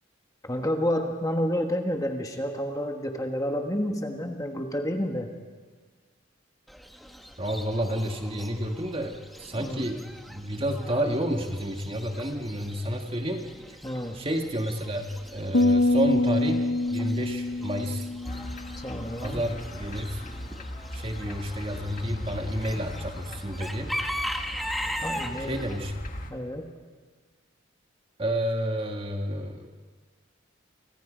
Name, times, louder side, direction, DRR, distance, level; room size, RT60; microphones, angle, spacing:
voice 1, 0.4-5.3 9.5-9.9 13.8-14.2 18.8-19.4 25.0-25.6 26.3-26.7, equal, 15° left, 3 dB, 1.5 m, -29 dB
Chicken rooster / Bird, 6.7-25.9, equal, ahead, 1.2 m, -40 dB
voice 2, 7.4-13.4 14.1-18.1 19.2-20.2 20.9-23.9 25.4-25.9 28.2-29.7, equal, 25° right, 4 dB, 1.7 m, -30 dB
sound 1, 15.5-19.0, left 2 dB, 70° left, 0.9 m, -25 dB
sound 2, 18.2-26.3, left 1 dB, 40° left, 1.6 m, -39 dB
30.0 x 25.0 x 5.1 m, 1.5 s
head